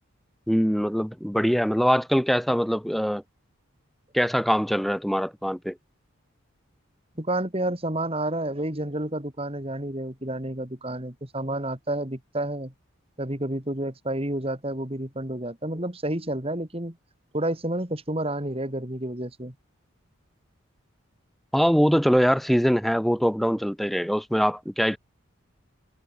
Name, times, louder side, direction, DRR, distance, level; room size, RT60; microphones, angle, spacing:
voice 1, 0.5-3.2 4.1-5.8 21.5-25.0, equal, ahead, 5.1 m, -23 dB
voice 2, 7.2-12.7 13.2-17.0 17.3-19.5, right 1 dB, 25° right, 2.7 m, -30 dB
head